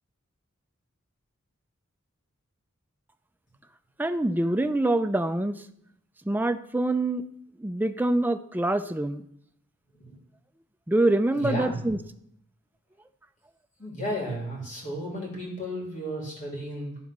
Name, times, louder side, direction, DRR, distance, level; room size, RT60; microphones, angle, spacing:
voice 1, 4.0-5.6 6.3-7.2 7.6-9.2 10.9-12.0, right 1 dB, 10° right, 9 dB, 0.4 m, -25 dB
voice 2, 11.3-12.0 13.8-17.0, equal, 40° left, -2 dB, 3.2 m, -33 dB
12.5 x 4.2 x 6.0 m, 0.72 s
head